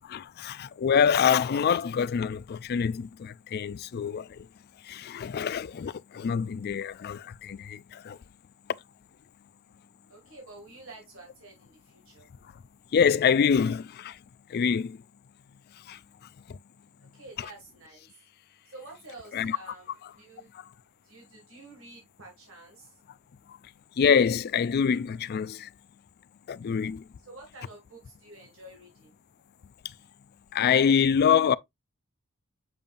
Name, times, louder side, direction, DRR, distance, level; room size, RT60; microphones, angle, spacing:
voice 1, 0.0-4.5 4.8-8.2 12.9-14.2 14.5-15.0 15.9-16.0 16.5-16.6 17.4-17.5 19.3-19.6 24.0-25.7 26.5-27.0 30.5-31.5, left 7 dB, 45° left, 0.3 m, -25 dB
voice 2, 10.1-11.7 12.1-12.3 17.2-18.1 18.7-20.5 21.1-22.9 27.3-29.1, right 2 dB, 65° right, 2.2 m, -49 dB
7.1 x 5.3 x 2.5 m
head